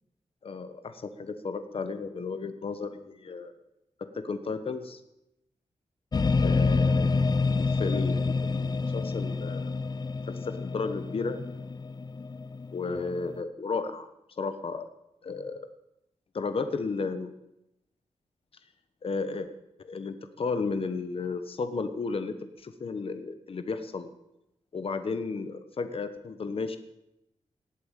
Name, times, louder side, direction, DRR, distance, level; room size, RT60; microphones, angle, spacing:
voice 1, 0.4-3.5 4.0-5.0 6.4-7.2 7.6-9.8 10.3-11.4 12.7-14.1 14.4-14.8 15.2-15.7 16.3-17.3 19.0-19.5 19.8-24.1 24.7-26.8, left 4 dB, 50° left, 10 dB, 1.1 m, -33 dB
sound 1, 6.1-13.4, left 4 dB, 35° left, 0.7 m, -28 dB
17.5 x 8.8 x 9.0 m, 0.87 s
wide cardioid pair, 155°, 12 cm